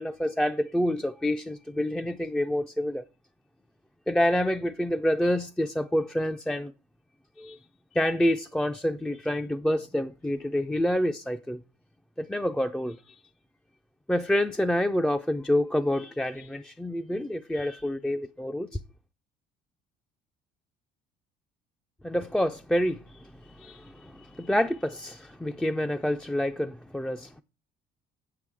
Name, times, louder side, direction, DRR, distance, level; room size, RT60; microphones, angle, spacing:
voice 1, 0.0-3.0 4.1-6.7 7.4-7.6 7.9-11.6 12.2-13.2 14.1-18.8 22.0-27.4, left 1 dB, 5° left, 0.4 m, -28 dB
8.0 x 7.6 x 4.7 m
cardioid pair, 130°, 18 cm